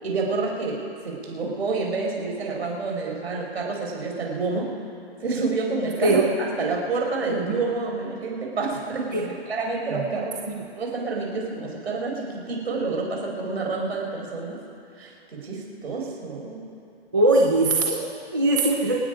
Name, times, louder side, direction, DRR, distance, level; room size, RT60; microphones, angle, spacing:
voice 1, 0.0-4.7 5.2-10.4 10.7-14.6 15.0-16.6, right 3 dB, 70° right, -1 dB, 4.9 m, -28 dB
voice 2, 17.1-19.0, right 2 dB, 20° right, -1 dB, 0.7 m, -21 dB
26.5 x 9.5 x 5.1 m, 2.6 s
hypercardioid pair, 180°, 33 cm